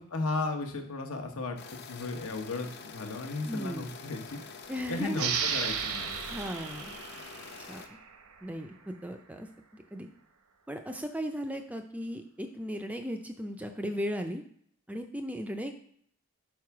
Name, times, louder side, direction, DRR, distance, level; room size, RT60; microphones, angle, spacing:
voice 1, 0.0-4.4 4.9-6.1, left 3 dB, 75° left, 3 dB, 1.0 m, -35 dB
sound 1, 1.6-7.9, left 5 dB, 50° left, 0.6 m, -46 dB
voice 2, 3.4-3.9 4.7-5.3 6.3-7.0 7.7-8.0 8.4-9.5 9.7-10.1 10.7-14.4 14.9-15.7, equal, 5° right, 6 dB, 0.4 m, -36 dB
sound 2, 5.1-8.4, right 7 dB, 80° right, 0.8 m, -34 dB
4.8 x 4.5 x 5.8 m, 0.64 s
head